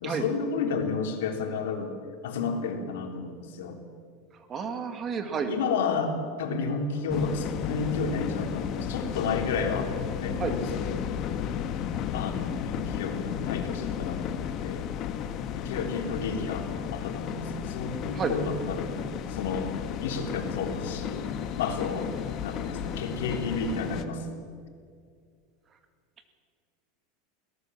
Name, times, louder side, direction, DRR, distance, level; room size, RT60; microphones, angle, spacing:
voice 1, 0.0-1.9 2.2-3.8 5.5-9.9 10.2-11.1 12.1-14.9 15.5-19.0 19.3-19.7 20.0-21.3 21.6-22.1 22.4-24.4, left 4 dB, 85° left, 3 dB, 3.5 m, -31 dB
voice 2, 4.5-5.5 10.4-10.6 18.1-18.4, right 6 dB, 25° right, 7 dB, 2.0 m, -30 dB
sound 1, 7.1-24.0, left 9 dB, 40° left, 1.3 m, -33 dB
21.5 x 18.0 x 7.3 m, 2.2 s
supercardioid pair, 150°, 0 cm